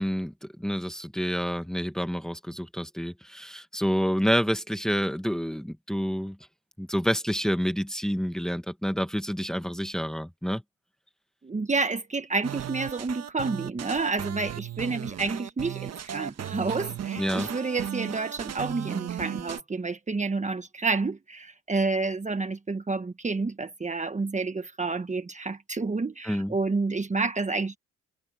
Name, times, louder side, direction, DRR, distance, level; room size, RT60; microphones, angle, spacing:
voice 1, 0.0-6.4 6.8-10.6 17.2-17.5 26.2-26.5, equal, ahead, 1.6 m, -28 dB
voice 2, 11.4-27.8, right 3 dB, 25° right, 1.5 m, -29 dB
sound 1, 12.4-19.6, right 10 dB, 60° right, 1.4 m, -36 dB
cardioid pair, 90°, 30 cm